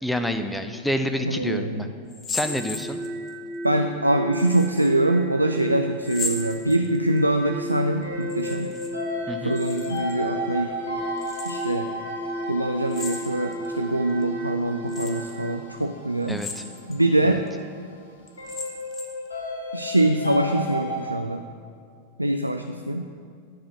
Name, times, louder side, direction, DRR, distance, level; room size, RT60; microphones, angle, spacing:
voice 1, 0.0-1.9 2.3-3.0 9.3-9.6 16.3-16.6 17.2-17.4, equal, 5° left, 7 dB, 0.5 m, -28 dB
voice 2, 1.2-1.8 3.6-8.7 9.4-10.7 11.5-11.9 12.5-16.4 16.9-17.4 19.7-21.4 22.2-23.1, right 1 dB, 85° right, 6 dB, 0.3 m, -24 dB
sound 1, 2.1-3.3 4.3-4.9 6.0-7.2 8.2-8.9 9.2-10.2 11.2-11.8 12.9-13.7 14.2-14.3 14.9-15.4 16.2-17.0 17.5-17.6 18.3-19.3, left 3 dB, 25° left, 1.1 m, -36 dB
sound 2, 2.4-15.5, right 1 dB, 50° right, 1.0 m, -34 dB
sound 3, 7.4-21.1, left 1 dB, 75° left, 1.8 m, -35 dB
10.0 x 4.9 x 6.2 m, 2.3 s
figure-of-eight pair, 90°, 0 cm